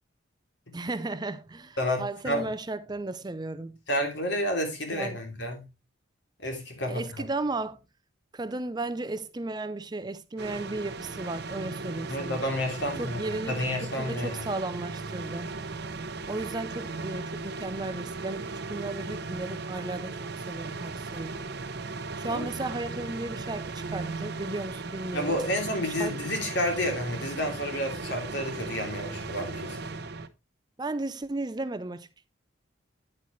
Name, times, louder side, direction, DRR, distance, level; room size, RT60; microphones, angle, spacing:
voice 1, 0.7-3.7 4.9-5.2 6.9-7.8 8.3-12.4 13.0-15.5 16.3-21.3 22.2-25.4 25.8-26.1 30.8-32.3, right 2 dB, 20° right, 0.5 m, -35 dB
voice 2, 1.8-2.5 3.9-5.6 6.4-7.0 12.1-14.5 22.2-22.5 25.1-29.9, left 1 dB, 60° left, 3.0 m, -30 dB
sound 1, 10.4-30.3, right 3 dB, 55° right, 0.7 m, -37 dB
9.9 x 8.4 x 3.1 m
head